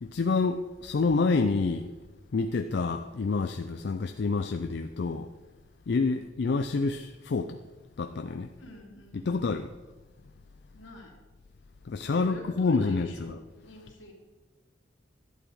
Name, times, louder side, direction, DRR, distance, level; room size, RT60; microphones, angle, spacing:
voice 1, 0.0-1.9 2.3-5.3 5.9-7.6 8.0-8.5 9.3-9.7 11.9-13.3, left 4 dB, 55° left, 7 dB, 0.4 m, -28 dB
voice 2, 8.6-9.5 10.7-11.1 12.0-14.1, equal, 80° left, -1 dB, 2.5 m, -47 dB
12.0 x 8.3 x 4.7 m, 1.2 s
head